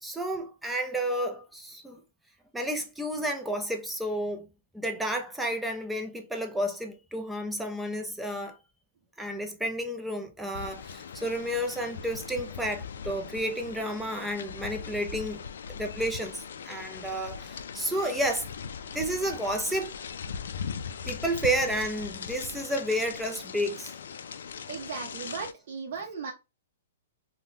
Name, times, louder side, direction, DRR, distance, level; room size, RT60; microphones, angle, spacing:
voice 1, 0.0-2.0 2.5-4.5 4.7-8.6 9.2-15.4 15.7-16.4 16.6-18.5 18.9-19.9 21.1-23.9, right 1 dB, 5° right, 0.4 m, -31 dB
sound 1, 10.5-25.5, left 6 dB, 80° left, 0.3 m, -40 dB
voice 2, 24.7-26.3, right 5 dB, 50° right, 0.6 m, -36 dB
3.5 x 2.1 x 2.6 m
hypercardioid pair, 165°, 0 cm